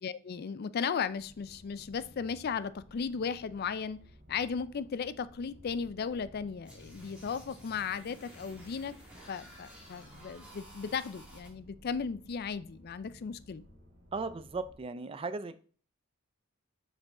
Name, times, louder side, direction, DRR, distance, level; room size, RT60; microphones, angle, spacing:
voice 1, 0.0-4.0 4.3-8.9 9.3-13.6, left 6 dB, 50° left, 0.4 m, -36 dB
sound 1, 1.1-14.8, equal, 60° right, 3.2 m, -57 dB
sound 2, 6.6-11.5, right 1 dB, 5° right, 2.1 m, -53 dB
voice 2, 14.1-15.6, right 3 dB, 25° right, 0.3 m, -37 dB
6.1 x 5.1 x 3.7 m
head